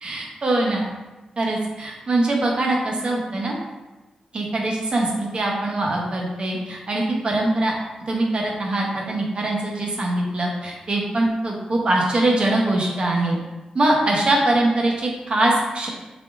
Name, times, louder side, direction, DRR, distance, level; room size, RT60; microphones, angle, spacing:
voice 1, 0.0-0.8 1.4-3.6 4.3-7.7 8.1-13.4 13.7-15.9, right 2 dB, 50° right, -1 dB, 0.8 m, -22 dB
3.6 x 3.4 x 2.5 m, 1.1 s
cardioid pair, 90°, 2 cm